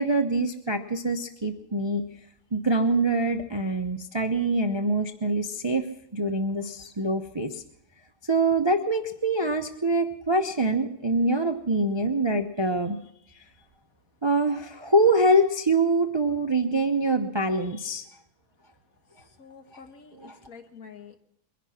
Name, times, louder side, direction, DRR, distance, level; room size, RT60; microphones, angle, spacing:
voice 1, 0.0-2.0 2.5-7.6 8.3-13.0 14.2-18.0 20.2-20.4, right 2 dB, 25° right, 6 dB, 0.6 m, -24 dB
voice 2, 19.4-21.2, left 6 dB, 60° left, 6 dB, 1.8 m, -47 dB
22.5 x 11.0 x 5.8 m, 0.73 s
omnidirectional pair, 1.7 m